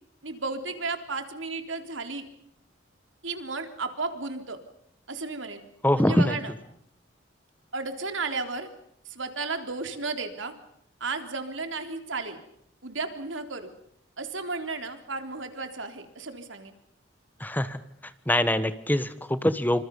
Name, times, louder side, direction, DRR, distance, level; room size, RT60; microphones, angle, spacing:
voice 1, 0.2-2.3 3.2-4.6 5.1-5.6 6.0-6.5 7.7-8.7 9.1-10.5 11.0-12.4 12.8-13.7 14.2-16.7, right 3 dB, 90° right, 7 dB, 3.7 m, -33 dB
voice 2, 5.8-6.4 17.4-17.8 18.3-19.8, left 1 dB, 10° left, 12 dB, 1.4 m, -23 dB
27.5 x 26.5 x 5.5 m, 0.71 s
head